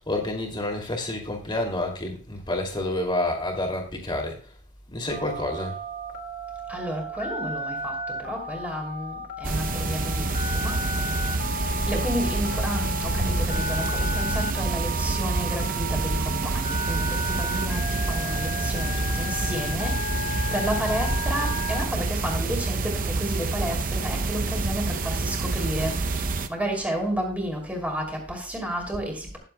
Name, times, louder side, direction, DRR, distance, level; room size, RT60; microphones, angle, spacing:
voice 1, 0.0-4.4 4.9-5.8, left 1 dB, 20° left, 2 dB, 2.5 m, -29 dB
Telephone, 5.1-21.8, left 1 dB, 45° left, 2.0 m, -33 dB
voice 2, 6.7-10.8 11.8-29.4, equal, 5° right, 0 dB, 2.7 m, -31 dB
sound 1, 9.4-26.5, right 3 dB, 40° right, 0.6 m, -27 dB
21.0 x 7.5 x 2.2 m, 0.38 s
head